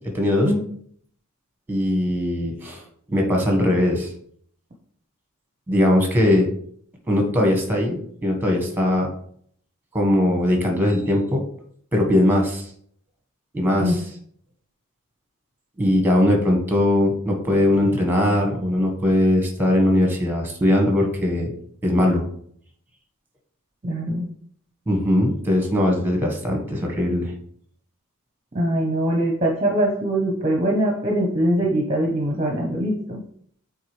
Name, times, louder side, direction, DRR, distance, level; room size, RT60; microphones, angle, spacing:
voice 1, 0.1-0.5 1.7-2.8 3.1-4.1 5.7-6.5 7.1-9.1 9.9-11.5 11.9-12.7 13.5-14.1 15.8-21.5 21.8-22.3 24.9-27.3, left 1 dB, 10° right, 1 dB, 1.3 m, -20 dB
voice 2, 23.8-24.2 28.5-33.2, right 1 dB, 25° right, -1 dB, 0.8 m, -22 dB
8.4 x 3.8 x 3.2 m, 0.63 s
head